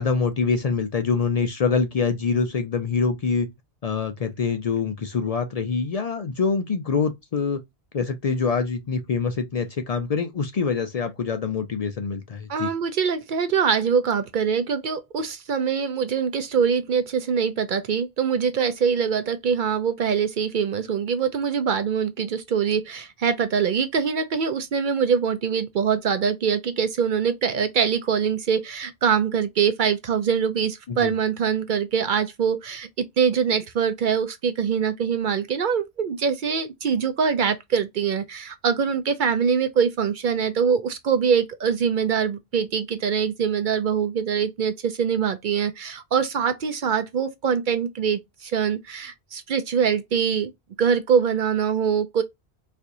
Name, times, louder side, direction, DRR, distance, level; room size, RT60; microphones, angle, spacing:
voice 1, 0.0-3.5 3.8-7.6 7.9-12.7 30.9-31.1, left 5 dB, 55° left, 0.4 m, -25 dB
voice 2, 12.5-32.9 33.2-50.5 50.8-52.2, right 7 dB, 60° right, 0.6 m, -23 dB
4.3 x 2.4 x 2.5 m
omnidirectional pair, 1.1 m